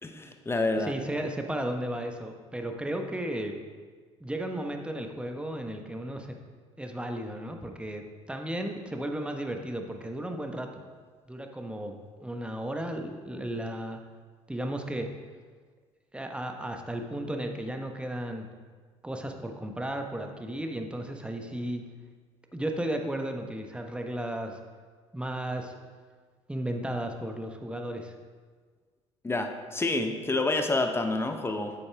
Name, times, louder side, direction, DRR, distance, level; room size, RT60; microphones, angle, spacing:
voice 1, 0.0-0.9 29.2-31.7, left 2 dB, 15° left, 6 dB, 1.0 m, -28 dB
voice 2, 0.8-3.6 4.2-6.4 6.8-10.8 11.3-11.9 12.2-14.0 14.5-15.1 16.1-18.5 19.0-21.8 22.5-24.6 25.1-25.7 26.5-28.1, right 1 dB, 5° right, 4 dB, 1.2 m, -34 dB
11.0 x 8.4 x 3.5 m, 1.5 s
figure-of-eight pair, 50°, 15 cm